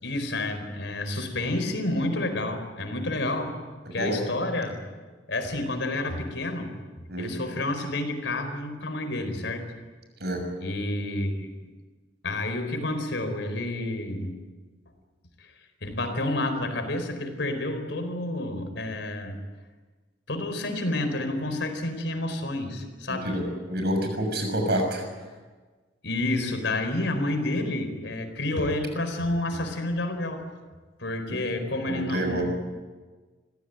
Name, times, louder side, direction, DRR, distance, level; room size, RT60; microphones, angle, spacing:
voice 1, 0.0-3.6 3.9-4.8 5.3-6.8 7.2-9.6 10.6-11.5 12.2-14.4 15.4-15.5 15.8-19.4 20.3-23.4 26.0-30.4 31.0-32.4, left 2 dB, 70° left, 7 dB, 4.5 m, -29 dB
voice 2, 3.9-4.2 7.1-7.3 10.2-10.5 23.1-25.0 31.9-32.4, right 1 dB, 60° right, 4 dB, 6.5 m, -28 dB
26.0 x 16.5 x 9.5 m, 1.3 s
head